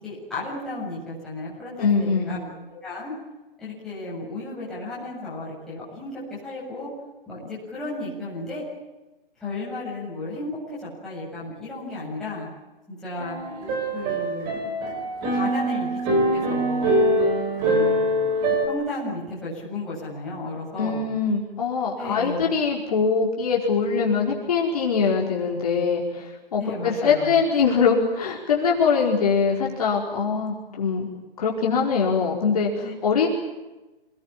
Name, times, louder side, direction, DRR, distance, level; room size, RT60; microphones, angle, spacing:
voice 1, 0.0-3.1 3.6-6.9 7.3-8.6 9.4-12.5 12.9-13.4 13.9-14.5 15.3-17.0 17.7-18.0 18.7-21.1 22.0-22.5 26.6-27.4 32.8-33.0, left 2 dB, ahead, -9 dB, 8.0 m, -34 dB
voice 2, 1.8-2.4 20.8-31.1 31.4-33.3, left 5 dB, 40° left, -2 dB, 4.9 m, -23 dB
sound 1, 13.2-18.7, right 1 dB, 15° right, 3.9 m, -23 dB
27.5 x 21.0 x 9.0 m, 1.1 s
hypercardioid pair, 175°, 29 cm